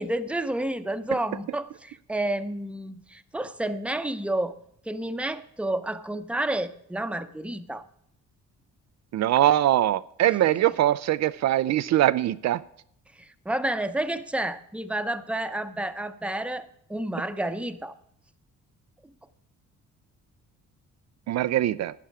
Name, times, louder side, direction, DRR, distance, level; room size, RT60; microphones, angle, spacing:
voice 1, 0.0-4.6 4.8-7.9 13.2-18.0, right 1 dB, 5° right, 10 dB, 0.7 m, -30 dB
voice 2, 9.1-12.6 21.3-21.9, right 13 dB, 60° right, 14 dB, 0.4 m, -22 dB
11.5 x 10.0 x 4.8 m, 0.69 s
cardioid pair, 90°, 30 cm